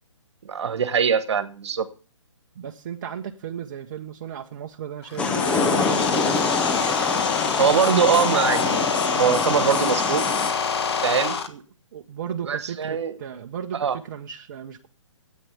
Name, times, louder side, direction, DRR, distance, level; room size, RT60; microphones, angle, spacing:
voice 1, 0.4-1.9 7.6-10.3 11.0-11.4 12.4-13.2 13.7-14.0, right 7 dB, 60° right, 1.4 m, -22 dB
voice 2, 2.6-6.4 11.5-11.6 11.9-14.9, right 9 dB, 40° right, 0.8 m, -36 dB
sound 1, 5.0-11.5, left 5 dB, 55° left, 1.5 m, -25 dB
sound 2, 5.2-10.5, left 4 dB, 5° left, 0.5 m, -26 dB
9.8 x 8.4 x 6.8 m
hypercardioid pair, 155°, 16 cm